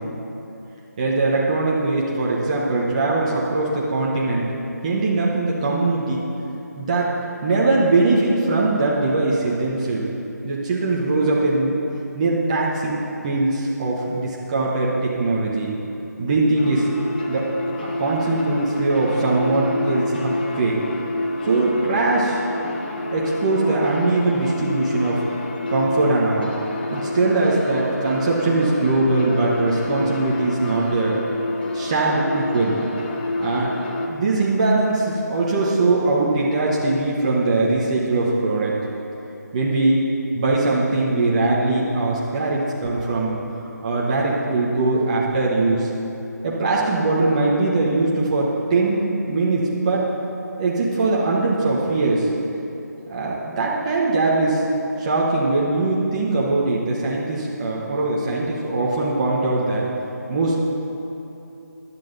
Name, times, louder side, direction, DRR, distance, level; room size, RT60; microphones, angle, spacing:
voice 1, 1.0-4.5 4.8-6.2 6.8-7.1 7.4-10.0 10.4-11.7 12.1-15.7 16.2-16.9 17.3-17.5 17.8-20.8 21.4-22.4 23.1-25.2 25.7-26.5 26.9-31.2 31.7-32.8 33.4-33.7 34.1-38.7 39.5-40.1 40.3-43.4 43.8-45.9 46.4-50.1 50.6-52.3 53.1-54.6 55.0-59.9 60.3-60.6, right 2 dB, 20° right, -5 dB, 1.1 m, -21 dB
sound 1, 16.6-34.1, left 2 dB, 30° left, 1.0 m, -28 dB
13.5 x 11.0 x 4.0 m, 3.0 s
figure-of-eight pair, 170°, 10 cm